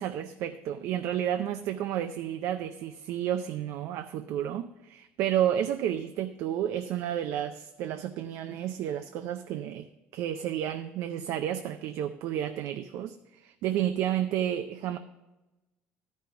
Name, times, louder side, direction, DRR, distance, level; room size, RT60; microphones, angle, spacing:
voice 1, 0.0-9.9 10.1-15.0, right 10 dB, 70° right, 0.5 m, -31 dB
12.0 x 5.3 x 5.5 m
cardioid pair, 130°, 5 cm